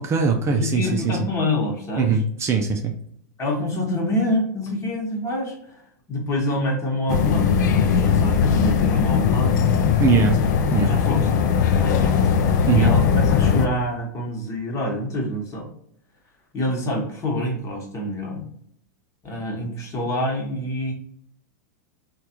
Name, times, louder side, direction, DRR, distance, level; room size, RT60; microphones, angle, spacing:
voice 1, 0.0-1.2 2.0-3.0 10.0-10.4 10.7-10.9 12.7-12.9, right 5 dB, 25° right, 3 dB, 0.5 m, -21 dB
voice 2, 0.5-2.1 3.4-5.8 6.1-9.6 10.9-12.2 12.7-15.7 16.5-18.5 19.2-20.9, left 1 dB, 30° left, 0 dB, 1.2 m, -26 dB
sound 1, 7.1-13.7, left 7 dB, 70° left, 0.4 m, -19 dB
3.3 x 2.4 x 2.8 m, 0.69 s
hypercardioid pair, 105°, 10 cm